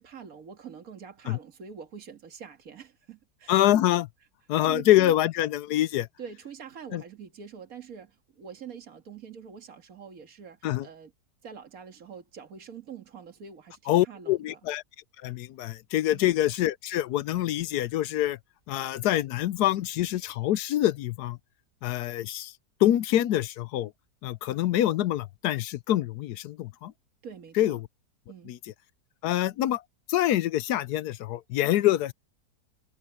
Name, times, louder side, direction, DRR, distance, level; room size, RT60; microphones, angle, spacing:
voice 1, 0.0-3.6 4.6-5.2 6.2-11.1 11.4-14.6 16.1-16.3 27.2-27.8 28.3-28.5, right 7 dB, 55° right, 2.3 m, -45 dB
voice 2, 3.5-4.1 4.5-6.1 6.9-7.0 10.6-10.9 13.9-14.8 15.2-18.4 18.7-21.4 21.8-22.5 22.8-23.9 24.2-26.9 27.6-27.9 28.5-28.6 29.2-29.8 30.1-32.1, left 13 dB, 75° left, 1.2 m, -25 dB
omnidirectional pair, 1.8 m